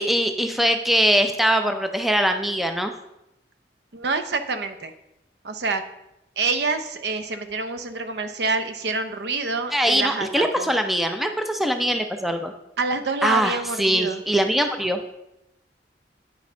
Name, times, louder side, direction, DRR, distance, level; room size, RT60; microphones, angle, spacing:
voice 1, 0.0-2.9 9.7-12.5 13.2-15.0, equal, ahead, 6 dB, 0.4 m, -22 dB
voice 2, 3.9-4.9 5.4-5.8 6.4-10.7 12.8-14.2, right 3 dB, 70° right, 9 dB, 0.6 m, -27 dB
9.0 x 5.3 x 3.7 m, 0.87 s
head